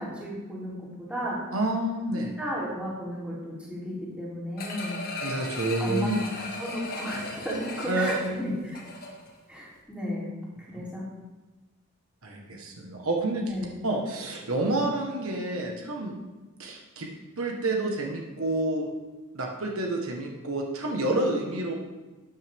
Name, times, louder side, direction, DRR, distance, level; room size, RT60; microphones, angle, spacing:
voice 1, 0.0-1.4 2.1-5.0 5.8-6.1 6.4-8.5 9.5-11.1 13.5-13.7, equal, 5° right, -7 dB, 3.4 m, -34 dB
voice 2, 1.5-2.3 5.2-6.2 7.9-8.3 12.2-13.5 13.8-16.1 16.6-17.1 17.4-18.9 19.3-21.7, right 2 dB, 65° right, 0 dB, 1.4 m, -29 dB
sound 1, 4.6-9.4 9.8-9.9, left 2 dB, 45° left, 1.8 m, -37 dB
13.0 x 9.2 x 3.6 m, 1.2 s
head